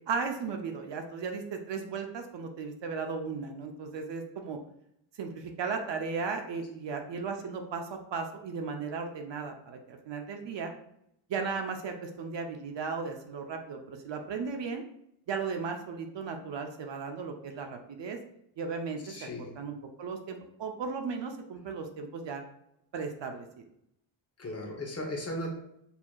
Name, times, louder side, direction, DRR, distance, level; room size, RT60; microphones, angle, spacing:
voice 1, 0.1-4.6 5.2-10.7 11.3-14.9 15.3-18.2 18.6-19.0 19.4-22.4 22.9-23.6, right 5 dB, 60° right, 4 dB, 0.8 m, -36 dB
voice 2, 19.1-19.6 24.4-25.5, left 1 dB, 30° left, 0 dB, 1.0 m, -36 dB
6.8 x 2.8 x 2.4 m, 0.74 s
cardioid pair, 125°, 50 cm